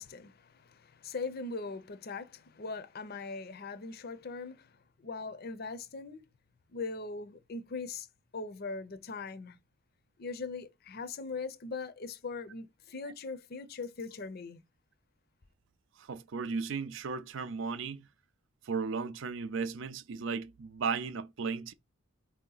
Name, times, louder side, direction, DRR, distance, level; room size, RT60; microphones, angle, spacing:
voice 1, 0.0-6.2 6.7-8.1 8.3-9.6 10.2-14.6, left 4 dB, 45° left, 0.5 m, -40 dB
voice 2, 16.0-18.1 18.6-21.7, right 5 dB, 60° right, 0.4 m, -35 dB
4.5 x 2.8 x 3.8 m
head